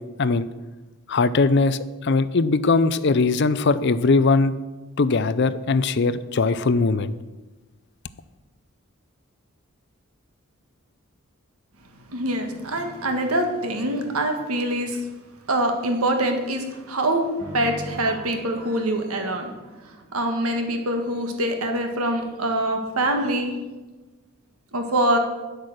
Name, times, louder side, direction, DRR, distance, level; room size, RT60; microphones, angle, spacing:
voice 1, 1.1-4.5 5.0-7.1, left 3 dB, 50° left, 15 dB, 0.5 m, -20 dB
voice 2, 12.1-15.0 15.5-17.3 17.5-19.5 20.1-23.5 24.7-25.2, right 1 dB, 85° right, 4 dB, 1.6 m, -24 dB
sound 1, 17.4-20.3, equal, 40° right, 3.8 m, -39 dB
10.5 x 8.1 x 6.5 m, 1.2 s
head